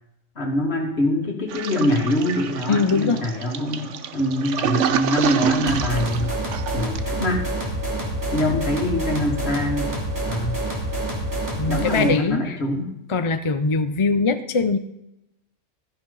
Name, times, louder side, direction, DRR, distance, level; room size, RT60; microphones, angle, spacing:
voice 1, 0.4-6.3 6.7-7.5 8.3-10.0 10.3-10.6 11.6-12.9, left 1 dB, 55° left, 2 dB, 2.3 m, -24 dB
Toilet flush, 1.5-7.2, right 8 dB, 70° right, 1.1 m, -27 dB
voice 2, 2.7-3.2 11.6-12.6 13.1-14.8, left 4 dB, 35° left, 10 dB, 0.5 m, -21 dB
sound 1, 5.7-12.2, right 1 dB, 15° right, 2.7 m, -27 dB
13.5 x 10.5 x 4.0 m, 0.86 s
omnidirectional pair, 1.3 m